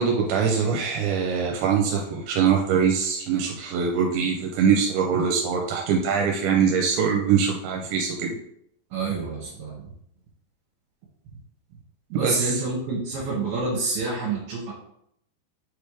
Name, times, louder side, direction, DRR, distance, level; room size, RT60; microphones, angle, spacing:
voice 1, 0.0-8.4 12.2-12.6, right 6 dB, 85° right, 1 dB, 2.9 m, -23 dB
voice 2, 8.9-9.9 12.1-14.7, right 3 dB, 65° right, -6 dB, 3.0 m, -28 dB
7.3 x 3.3 x 4.9 m, 0.72 s
omnidirectional pair, 5.4 m